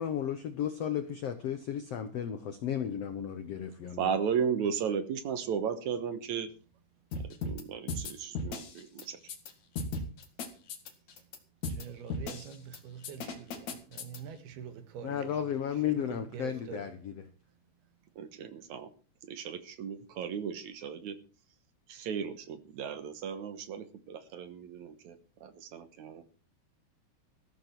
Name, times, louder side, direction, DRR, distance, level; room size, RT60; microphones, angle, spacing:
voice 1, 0.0-4.0 15.0-17.3, left 9 dB, 75° left, 1.4 m, -34 dB
voice 2, 4.0-6.5 7.2-9.3 18.2-18.9 19.2-21.2 21.9-26.2, right 7 dB, 65° right, 2.1 m, -35 dB
sound 1, 7.1-7.6 7.9-9.5 9.8-11.4 11.6-11.8 12.1-12.8 13.0-14.2, left 3 dB, 55° left, 3.0 m, -36 dB
voice 3, 11.7-15.4 15.9-16.9, right 8 dB, 85° right, 3.5 m, -45 dB
15.0 x 13.5 x 4.5 m
omnidirectional pair, 4.4 m